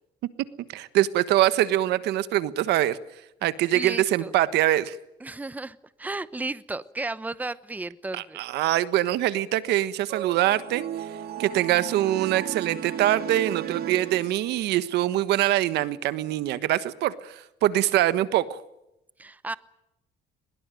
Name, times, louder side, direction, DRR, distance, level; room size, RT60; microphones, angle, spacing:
voice 1, 0.7-3.0 3.4-5.0 8.1-10.8 11.4-18.6, right 14 dB, 80° right, 14 dB, 1.4 m, -24 dB
voice 2, 3.7-4.3 5.2-8.4 19.2-19.6, right 2 dB, 10° right, 15 dB, 0.9 m, -34 dB
sound 1, 10.1-14.8, right 10 dB, 65° right, 2.6 m, -35 dB
22.5 x 21.5 x 9.2 m, 0.87 s
cardioid pair, 110°, 17 cm